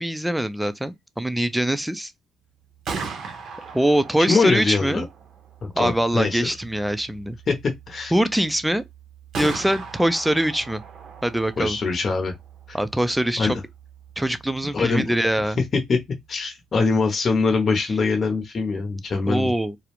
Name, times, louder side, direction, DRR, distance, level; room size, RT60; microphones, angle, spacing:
voice 1, 0.0-2.1 3.7-5.1 5.7-7.4 8.1-8.8 9.4-10.8 11.2-11.8 12.7-13.6 14.2-15.6 19.3-19.8, right 1 dB, 5° right, 0.4 m, -23 dB
Gunshot gunfire, 2.6-16.4, right 5 dB, 65° right, 0.6 m, -39 dB
voice 2, 4.3-5.0 5.6-6.4 7.5-7.6 7.9-8.1 11.6-12.3 13.4-13.5 14.7-15.1 15.9-16.0 16.3-19.5, left 4 dB, 45° left, 0.7 m, -22 dB
2.3 x 2.0 x 2.9 m
cardioid pair, 90°, 0 cm